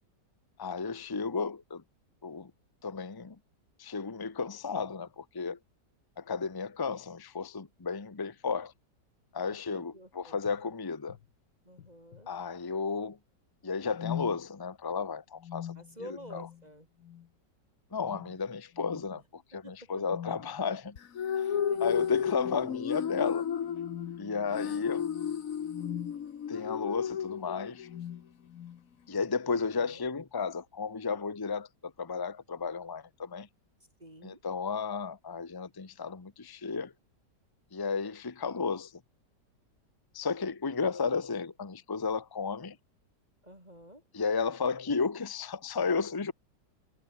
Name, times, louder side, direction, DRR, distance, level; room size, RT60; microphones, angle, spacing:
voice 1, 0.6-1.8 2.2-2.5 2.8-3.4 3.8-5.6 6.2-8.7 9.3-11.2 12.3-13.2 13.6-15.7 16.0-16.5 17.9-21.0 21.4-23.5 24.2-25.1 26.5-27.9 29.1-33.5 34.2-36.9 37.7-39.0 40.1-42.8 44.1-46.3, left 5 dB, 15° left, 0.8 m, -33 dB
voice 2, 9.7-10.4 11.6-12.3 15.7-16.9 19.6-20.0 21.5-22.3 24.5-25.0 29.5-30.0 34.0-34.4 43.4-44.0, equal, 20° right, 6.0 m, -50 dB
sound 1, 10.5-10.6 11.1-11.3 11.8-12.3 13.9-14.4 15.4-16.7 17.0-17.3 18.0-18.4 18.7-19.1 20.0-20.6 21.7-22.2 22.6-22.8 23.7-26.2 27.1-27.4 27.8-28.9, left 10 dB, 75° left, 1.7 m, -43 dB
sound 2, 21.0-28.0, left 8 dB, 55° left, 1.5 m, -33 dB
omnidirectional pair, 1.9 m